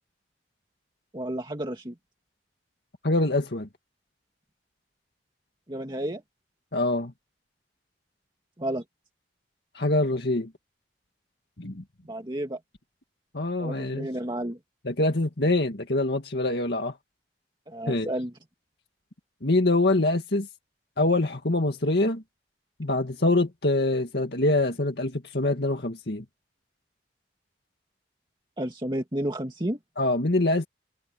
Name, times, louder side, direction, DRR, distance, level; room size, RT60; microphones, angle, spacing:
voice 1, 1.1-2.0 5.7-6.2 8.6-8.8 12.0-12.6 13.6-14.6 17.7-18.3 28.6-29.8, right 1 dB, 25° right, 2.0 m, -31 dB
voice 2, 3.0-3.7 6.7-7.1 9.7-10.5 11.6-11.8 13.3-14.1 14.9-17.0 17.9-18.1 19.4-20.5 21.0-22.2 22.8-26.2 30.0-30.7, left 2 dB, 65° left, 2.1 m, -24 dB
head